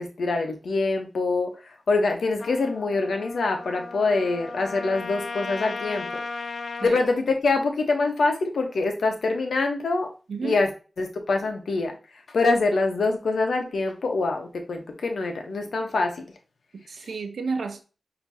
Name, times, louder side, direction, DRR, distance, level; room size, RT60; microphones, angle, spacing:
voice 1, 0.0-6.1 6.8-10.1 10.4-10.7 11.0-11.9 12.3-16.3, left 3 dB, 85° left, 1.0 m, -25 dB
Trumpet, 2.4-6.9, left 4 dB, 65° left, 0.6 m, -36 dB
voice 2, 10.3-10.6 16.7-17.8, right 4 dB, 90° right, 0.7 m, -31 dB
6.1 x 2.9 x 2.8 m
wide cardioid pair, 70°, 0 cm